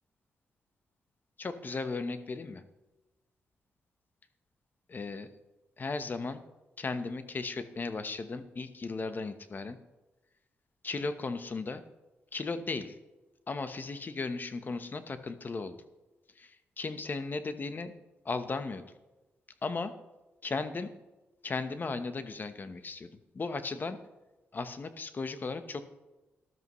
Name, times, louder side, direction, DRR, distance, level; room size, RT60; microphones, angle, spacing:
voice 1, 1.4-2.6 4.9-5.3 5.8-6.4 6.8-9.8 10.8-11.8 12.3-13.0 13.5-15.8 16.4-17.9 18.2-18.8 19.6-19.9 20.4-20.9 21.4-24.0 24.5-25.9, left 3 dB, 40° left, 10 dB, 1.0 m, -36 dB
13.5 x 12.5 x 3.1 m, 1.1 s
cardioid pair, 70°, 5 cm